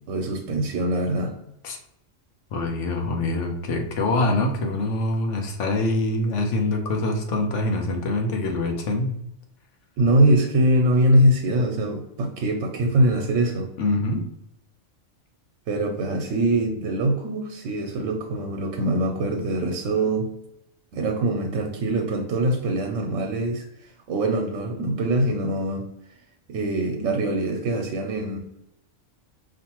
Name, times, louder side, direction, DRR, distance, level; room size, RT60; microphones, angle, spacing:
voice 1, 0.1-1.3 10.0-13.7 15.7-20.3 20.9-23.7 24.1-25.9 26.5-28.4, right 1 dB, 90° right, 3 dB, 1.0 m, -23 dB
voice 2, 2.5-9.2 13.8-14.2, left 2 dB, 70° left, 3 dB, 1.0 m, -24 dB
5.0 x 2.6 x 2.9 m, 0.81 s
omnidirectional pair, 1.3 m